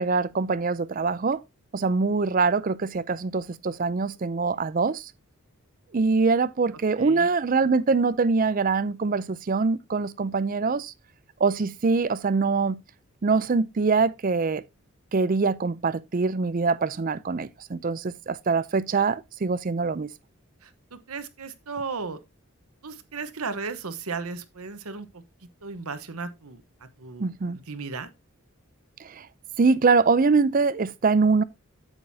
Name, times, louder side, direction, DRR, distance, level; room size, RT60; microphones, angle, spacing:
voice 1, 0.0-1.4 1.7-5.1 5.9-10.9 11.4-12.8 13.2-14.6 15.1-20.1 27.2-27.6 29.0-29.3 29.6-31.4, right 4 dB, 40° right, 0.4 m, -24 dB
voice 2, 7.0-7.3 20.6-22.2 22.8-25.2 25.6-28.1, right 4 dB, 85° right, 1.1 m, -36 dB
8.9 x 7.6 x 2.7 m
head